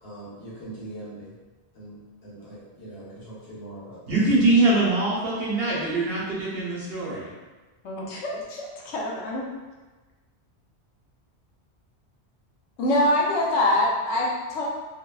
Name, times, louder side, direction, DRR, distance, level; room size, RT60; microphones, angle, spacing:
voice 1, 0.0-1.4 1.7-4.2, right 1 dB, 65° left, -9 dB, 1.2 m, -41 dB
voice 2, 4.1-7.3, right 2 dB, 65° right, -6 dB, 0.9 m, -23 dB
voice 3, 7.8-9.5 12.8-14.6, left 1 dB, 85° left, -3 dB, 0.9 m, -24 dB
2.5 x 2.1 x 2.2 m, 1.2 s
omnidirectional pair, 1.1 m